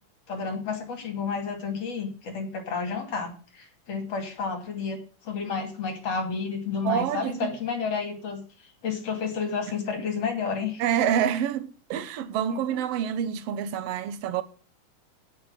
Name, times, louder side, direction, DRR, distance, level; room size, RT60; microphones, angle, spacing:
voice 1, 0.3-8.4 8.8-10.8 12.5-12.8, left 5 dB, 50° left, 3.4 m, -31 dB
voice 2, 6.8-7.5 10.8-14.4, right 9 dB, 65° right, 1.6 m, -27 dB
8.6 x 7.3 x 8.8 m
omnidirectional pair, 3.8 m